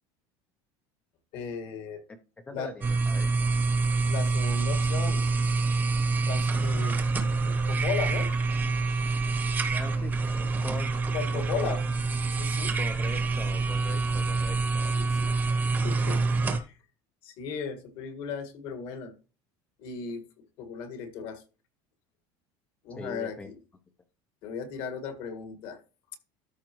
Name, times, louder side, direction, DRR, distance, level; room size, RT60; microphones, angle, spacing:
voice 1, 1.3-2.0 2.5-2.7 4.1-5.2 6.3-7.0 7.3-8.3 11.1-11.8 12.3-12.7 15.0-15.3 15.7-16.7 17.2-19.1 19.8-20.2 20.6-21.4 22.8-23.6 24.4-25.8, left 6 dB, 50° left, 7 dB, 1.8 m, -36 dB
voice 2, 2.5-3.3 9.7-10.2 10.6-10.9 11.3-11.8 12.8-15.0 23.0-23.5, left 3 dB, 10° left, 7 dB, 0.5 m, -41 dB
sound 1, 2.8-16.6, right 3 dB, 15° right, 0.9 m, -26 dB
13.5 x 5.1 x 3.0 m, 0.33 s
cardioid pair, 175°, 11 cm